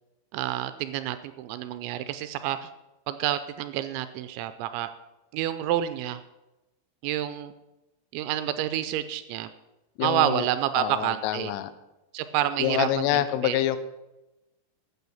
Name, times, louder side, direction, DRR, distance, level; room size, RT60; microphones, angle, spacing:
voice 1, 0.3-2.7 3.1-4.9 5.3-6.2 7.0-7.5 8.1-9.5 10.0-11.5 12.1-13.6, right 12 dB, 80° right, 11 dB, 2.7 m, -28 dB
voice 2, 10.0-10.5 10.8-11.7 12.6-13.8, left 12 dB, 85° left, 13 dB, 3.4 m, -26 dB
12.0 x 8.4 x 7.1 m, 1.0 s
omnidirectional pair, 5.6 m